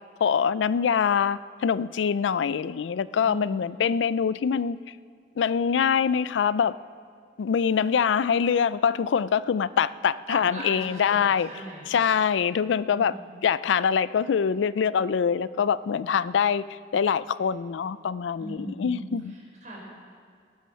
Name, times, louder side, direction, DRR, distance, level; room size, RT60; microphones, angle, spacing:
voice 1, 0.2-4.8 5.4-6.8 7.4-11.5 11.9-13.1 13.4-19.3, left 7 dB, 90° left, 17 dB, 0.4 m, -24 dB
voice 2, 3.2-3.7 10.3-11.9 12.9-13.3 18.4-19.8, right 1 dB, 45° right, -3 dB, 4.7 m, -40 dB
19.5 x 9.4 x 5.7 m, 2.2 s
head